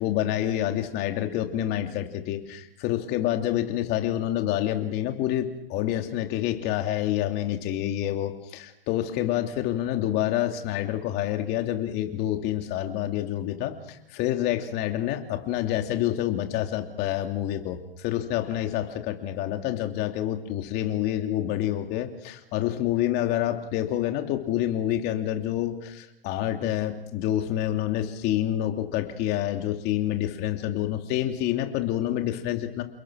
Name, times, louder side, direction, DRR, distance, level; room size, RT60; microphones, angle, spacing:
voice 1, 0.0-32.8, left 12 dB, 35° left, 5 dB, 3.0 m, -28 dB
29.5 x 21.0 x 6.4 m, 0.82 s
hypercardioid pair, 135°, 29 cm